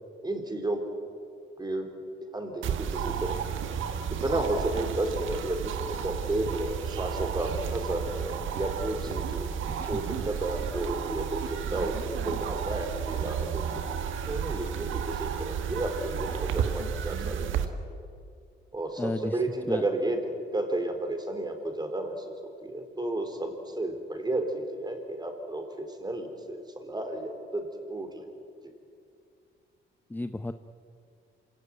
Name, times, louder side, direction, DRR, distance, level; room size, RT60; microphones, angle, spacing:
voice 1, 0.2-0.8 1.6-1.9 2.3-3.4 4.1-9.6 9.9-13.8 14.3-17.6 18.7-22.3 22.6-28.3, right 1 dB, 20° right, 5 dB, 4.0 m, -32 dB
sound 1, 2.6-17.7, right 8 dB, 80° right, 1.7 m, -32 dB
voice 2, 19.0-19.8 30.1-30.5, left 2 dB, 10° left, 9 dB, 0.7 m, -33 dB
26.5 x 16.5 x 9.5 m, 2.4 s
cardioid pair, 90°, 20 cm